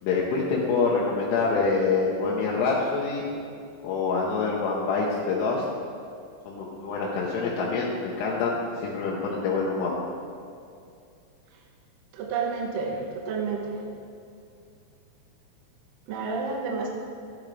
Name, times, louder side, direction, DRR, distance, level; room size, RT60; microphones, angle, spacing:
voice 1, 0.0-3.3 3.8-5.6 6.4-8.6 8.8-9.9, left 4 dB, 85° left, -5 dB, 3.1 m, -26 dB
voice 2, 12.1-13.8 16.1-16.9, right 4 dB, 70° right, 1 dB, 2.3 m, -30 dB
14.0 x 10.5 x 3.3 m, 2.4 s
omnidirectional pair, 4.6 m